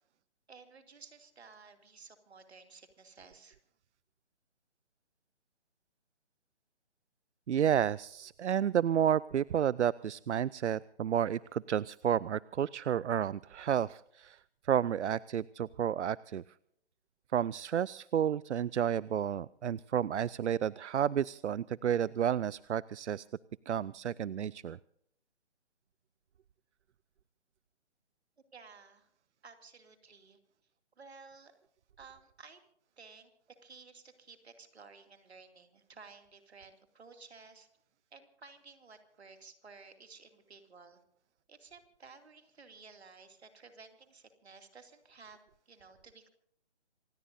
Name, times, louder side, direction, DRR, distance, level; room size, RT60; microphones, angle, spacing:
voice 1, 0.5-3.6 28.5-29.1 29.4-30.4 31.0-31.5 32.0-32.6 33.0-33.3 33.6-37.7 38.1-41.0 41.5-46.3, right 4 dB, 65° right, 6 dB, 2.7 m, -55 dB
voice 2, 7.5-14.4 14.6-16.4 17.3-23.3 23.7-24.8, right 9 dB, 85° right, 22 dB, 0.5 m, -31 dB
27.0 x 17.5 x 2.7 m, 0.71 s
hypercardioid pair, 165°, 34 cm